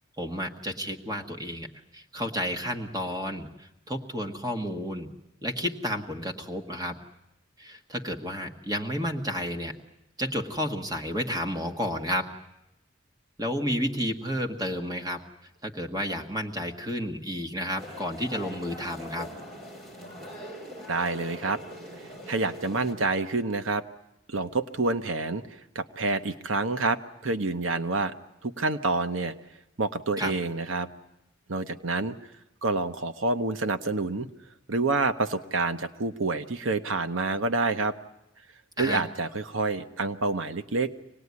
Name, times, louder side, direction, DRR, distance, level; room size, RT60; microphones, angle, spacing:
voice 1, 0.2-1.7 1.9-5.1 5.4-7.0 7.6-9.7 10.2-12.3 13.4-15.2 15.6-19.3 30.2-30.3 38.8-39.0, equal, 20° right, 4 dB, 1.7 m, -31 dB
sound 1, 17.8-22.9, left 1 dB, 45° right, 4.3 m, -42 dB
voice 2, 20.9-21.6 22.0-23.8 24.3-28.1 28.4-29.3 29.8-30.9 31.5-32.1 32.6-34.3 34.7-38.0 38.8-40.9, right 3 dB, 75° right, 10 dB, 0.9 m, -28 dB
25.5 x 19.0 x 9.7 m, 0.92 s
head